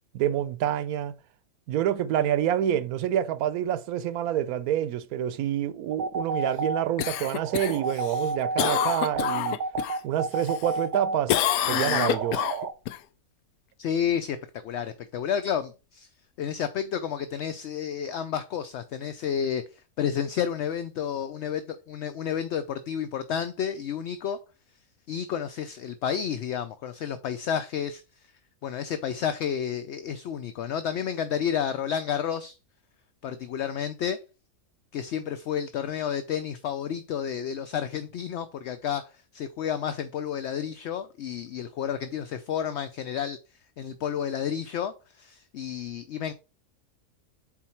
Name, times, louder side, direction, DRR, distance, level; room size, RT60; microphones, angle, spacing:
voice 1, 0.1-1.1 1.7-9.6 10.0-12.4, right 10 dB, 85° right, 1.1 m, -27 dB
sound 1, 5.9-12.7, right 3 dB, 60° right, 0.5 m, -31 dB
Cough, 7.0-10.0 10.4-11.0 11.3-13.0 17.4-17.5, left 12 dB, 85° left, 1.1 m, -28 dB
voice 2, 13.8-14.4 14.6-16.1 16.4-24.4 25.1-28.0 28.6-32.6 33.2-34.2 34.9-43.4 43.8-46.3, left 8 dB, 65° left, 0.8 m, -31 dB
7.3 x 4.4 x 4.3 m
omnidirectional pair, 1.5 m